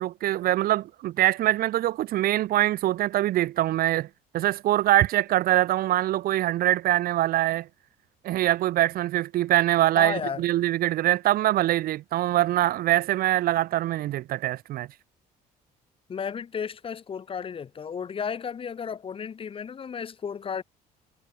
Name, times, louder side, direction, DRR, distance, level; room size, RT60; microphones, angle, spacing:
voice 1, 0.0-4.1 4.3-7.7 8.2-14.9, right 14 dB, 60° right, 0.5 m, -23 dB
voice 2, 9.9-10.4 16.1-20.6, left 7 dB, 30° left, 0.8 m, -33 dB
cardioid pair, 110°, 17 cm